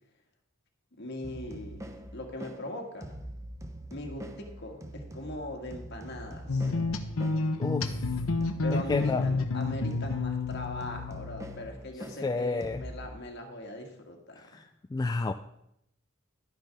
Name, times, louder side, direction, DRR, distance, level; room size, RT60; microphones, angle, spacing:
voice 1, 1.0-3.1 3.9-6.7 8.6-14.7, left 1 dB, 55° left, 2 dB, 1.8 m, -40 dB
sound 1, 1.2-13.1, right 1 dB, 15° right, 0.7 m, -44 dB
sound 2, 6.5-11.7, left 3 dB, 90° left, 0.8 m, -30 dB
voice 2, 7.6-8.1 8.7-9.2 12.2-12.8 14.4-14.7 14.9-15.3, left 3 dB, 20° left, 7 dB, 0.3 m, -30 dB
11.5 x 9.2 x 3.5 m, 0.77 s
head